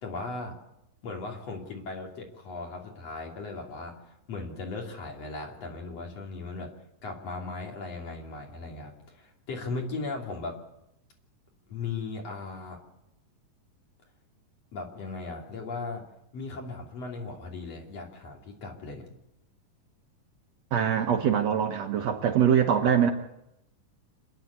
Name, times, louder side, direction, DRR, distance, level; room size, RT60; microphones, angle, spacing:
voice 1, 0.0-0.5 1.0-6.7 7.0-10.6 11.7-12.8 14.7-16.0 16.3-19.1, left 3 dB, 50° left, 1 dB, 3.9 m, -37 dB
voice 2, 20.7-23.1, right 8 dB, 65° right, 5 dB, 2.1 m, -23 dB
27.5 x 10.5 x 9.5 m, 0.85 s
omnidirectional pair, 3.8 m